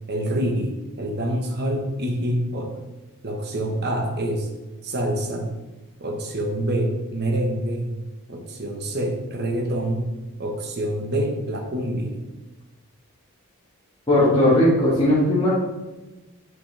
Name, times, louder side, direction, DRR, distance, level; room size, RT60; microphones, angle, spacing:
voice 1, 0.1-0.7 1.0-2.7 3.2-4.5 4.8-5.5 6.0-7.9 8.3-10.0 10.4-12.1, right 1 dB, 50° right, 2 dB, 1.2 m, -26 dB
voice 2, 14.1-15.5, left 1 dB, 20° left, -9 dB, 1.7 m, -17 dB
7.9 x 5.9 x 3.4 m, 1.1 s
head